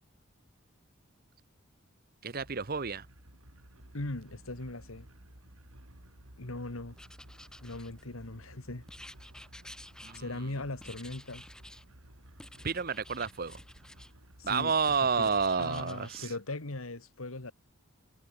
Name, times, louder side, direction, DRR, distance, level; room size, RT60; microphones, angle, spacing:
voice 1, 2.2-3.1 10.0-10.2 12.6-13.6 14.4-16.3, right 5 dB, 45° right, 0.9 m, -30 dB
sound 1, 2.4-15.8, right 1 dB, 80° right, 5.0 m, -55 dB
voice 2, 3.9-5.1 6.4-7.0 7.6-8.8 10.1-11.5 14.4-15.3 15.6-17.5, left 2 dB, 75° left, 2.1 m, -39 dB
Writing, 7.0-8.3 8.9-10.5 10.8-11.9 12.4-14.1 14.4-16.3, left 1 dB, 5° left, 3.3 m, -52 dB
head